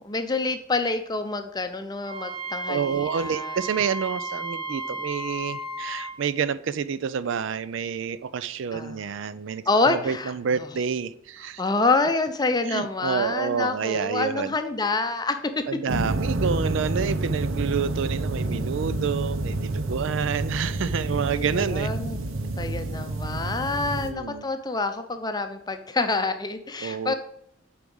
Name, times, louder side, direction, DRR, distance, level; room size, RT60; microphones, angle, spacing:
voice 1, 0.0-3.6 8.7-9.0 9.7-10.7 11.6-15.6 21.3-22.2 22.6-27.1, left 3 dB, 20° left, 8 dB, 0.6 m, -27 dB
Wind instrument woodwind instrument, 2.0-6.1, right 2 dB, 35° right, 1.8 m, -34 dB
voice 2, 2.7-11.6 12.7-14.5 15.7-21.9 23.9-24.4 26.8-27.1, right 6 dB, 65° right, 16 dB, 0.4 m, -28 dB
sound 1, 15.9-24.1, right 2 dB, 85° right, 0.9 m, -28 dB
8.2 x 4.8 x 5.4 m, 0.75 s
head